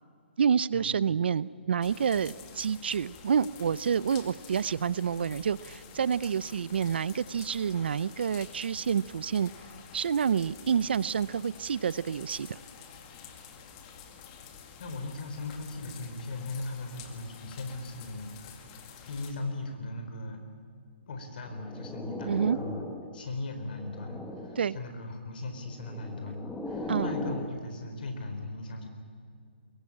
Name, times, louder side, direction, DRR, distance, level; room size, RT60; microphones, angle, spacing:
voice 1, 0.4-9.5 9.9-12.6 22.3-22.6 24.6-24.8 26.9-27.1, right 7 dB, 60° right, 19 dB, 0.6 m, -28 dB
sound 1, 1.8-19.3, left 7 dB, 25° left, 2.2 m, -49 dB
voice 2, 14.8-18.7 19.1-20.4 21.1-22.8 23.1-28.9, left 2 dB, 50° left, 6 dB, 4.5 m, -38 dB
sound 2, 21.4-23.2 23.6-24.8 25.7-27.5, left 2 dB, 5° left, 1.5 m, -38 dB
22.5 x 22.0 x 8.7 m, 2.3 s
hypercardioid pair, 160°, 6 cm